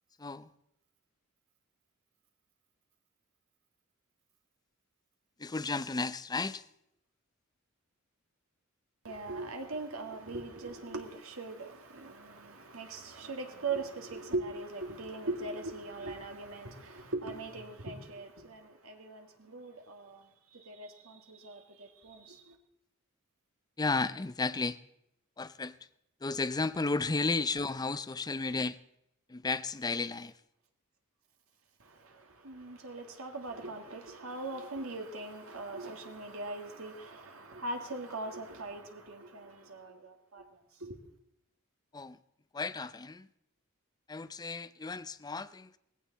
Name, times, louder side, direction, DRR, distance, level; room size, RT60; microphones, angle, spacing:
voice 1, 5.4-6.6 23.8-24.8 25.4-25.7 26.2-28.8 29.3-30.3 41.9-42.2 42.5-43.3 44.1-45.8, left 3 dB, 20° left, 0.5 m, -33 dB
voice 2, 9.0-22.6 31.8-41.0, right 2 dB, 70° right, 2.0 m, -41 dB
18.0 x 15.5 x 4.0 m
head